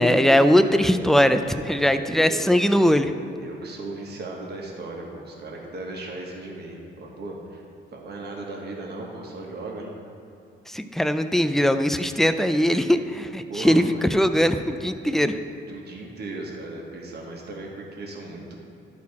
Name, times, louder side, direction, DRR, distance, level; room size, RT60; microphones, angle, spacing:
voice 1, 0.0-3.1 10.7-15.4, equal, ahead, 9 dB, 0.4 m, -20 dB
voice 2, 0.5-1.3 1.6-2.9 3.4-7.6 7.9-9.9 12.6-13.1 13.5-14.0 15.0-18.5, right 2 dB, 55° right, -1 dB, 1.5 m, -37 dB
11.5 x 4.2 x 4.2 m, 2.8 s
cardioid pair, 90°, 20 cm